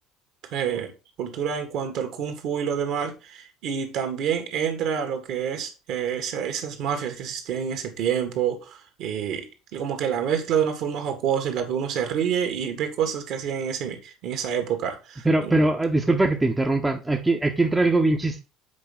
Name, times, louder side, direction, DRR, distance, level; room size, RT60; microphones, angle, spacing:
voice 1, 0.5-0.9 1.2-9.5 9.7-15.5, right 8 dB, 55° right, 2.1 m, -27 dB
voice 2, 15.2-18.4, right 2 dB, 15° right, 1.2 m, -21 dB
8.4 x 5.3 x 4.2 m
figure-of-eight pair, 60°, 0 cm